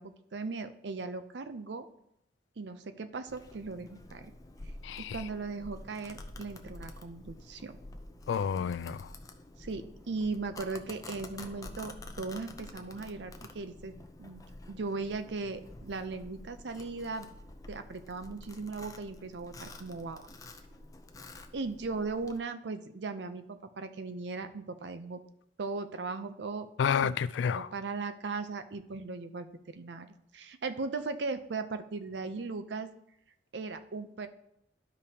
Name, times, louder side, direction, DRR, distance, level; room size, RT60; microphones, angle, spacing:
voice 1, 0.0-1.9 2.6-4.3 5.0-7.8 9.6-17.3 17.7-20.2 21.5-25.2 25.6-26.7 27.0-27.1 27.5-32.9 33.5-34.3, right 3 dB, 70° right, 0.6 m, -38 dB
Domestic sounds home sounds, 3.3-22.4, left 2 dB, 20° left, 0.5 m, -49 dB
voice 2, 4.8-5.2 8.3-9.1 26.8-27.7, left 7 dB, 80° left, 0.3 m, -30 dB
sound 1, 11.4-13.4, equal, ahead, 1.2 m, -57 dB
12.5 x 5.1 x 2.8 m
head